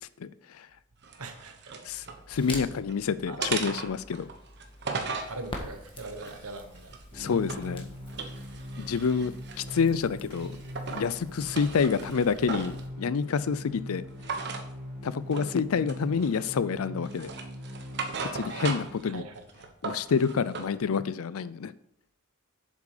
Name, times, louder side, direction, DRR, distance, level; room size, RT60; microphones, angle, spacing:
voice 1, 0.2-0.7 1.8-4.3 7.1-7.9 8.8-10.6 10.9-14.0 15.0-17.3 18.3-19.2 19.8-21.7, left 5 dB, 70° left, 17 dB, 0.5 m, -28 dB
sound 1, 1.0-2.2 2.6-3.0 3.4-5.3 5.9-7.7 8.1-9.9 10.3-11.1 11.4-12.8 14.2-14.7 15.3-15.5 15.9-16.6 17.0-19.0 19.4-20.7, right 4 dB, 50° right, 1.2 m, -37 dB
voice 2, 1.2-1.7 3.3-3.5 5.3-6.9 11.4-11.5 19.0-19.3 19.6-19.7, right 3 dB, 75° right, 7 dB, 1.1 m, -41 dB
Crackle, 1.9-12.9, left 1 dB, 25° left, 1.6 m, -46 dB
sound 2, 7.1-19.1, equal, 5° right, 3.0 m, -42 dB
7.6 x 7.4 x 4.9 m, 0.75 s
head